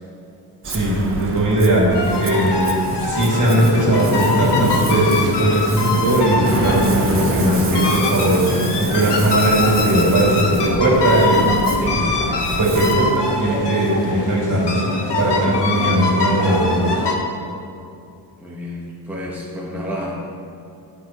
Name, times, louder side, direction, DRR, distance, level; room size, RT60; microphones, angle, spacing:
Ocean, 0.6-13.2, right 2 dB, 30° right, 1.0 m, -29 dB
voice 1, 0.6-1.9 2.2-2.7 3.0-8.4 8.8-11.5 12.5-14.8 15.2-16.9, right 1 dB, 45° right, -4 dB, 2.6 m, -18 dB
sound 1, 1.9-17.1, left 3 dB, 75° left, 1.3 m, -22 dB
voice 2, 11.7-12.4 18.4-20.1, equal, 5° right, -6 dB, 1.4 m, -30 dB
12.5 x 9.0 x 3.2 m, 2.6 s
wide cardioid pair, 135°, 42 cm